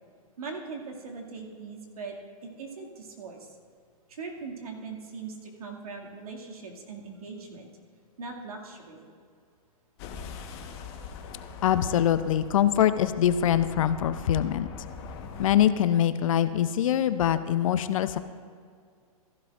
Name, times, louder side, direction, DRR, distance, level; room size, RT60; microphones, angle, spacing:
voice 1, 0.4-2.2 2.5-3.6 4.1-7.7 8.2-9.1, right 4 dB, 75° right, 0 dB, 2.3 m, -40 dB
sound 1, 10.0-15.6, left 5 dB, 45° left, 1.3 m, -42 dB
voice 2, 11.6-14.7 15.4-18.2, left 10 dB, 60° left, 12 dB, 0.6 m, -23 dB
15.0 x 11.5 x 2.5 m, 2.1 s
hypercardioid pair, 135°, 19 cm